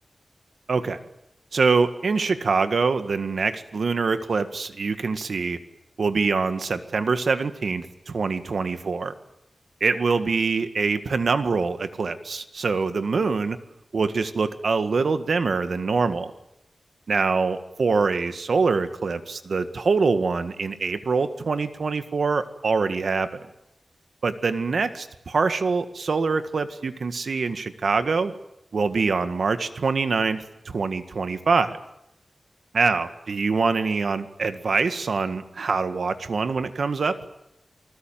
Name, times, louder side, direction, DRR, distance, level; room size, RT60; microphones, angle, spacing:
voice 1, 0.7-1.0 1.5-5.6 6.0-9.1 9.8-13.6 13.9-16.3 17.1-23.4 24.2-28.3 28.7-31.8 32.7-37.2, right 4 dB, 75° right, 10 dB, 1.8 m, -24 dB
29.0 x 20.0 x 9.2 m, 0.84 s
wide cardioid pair, 115°, 0 cm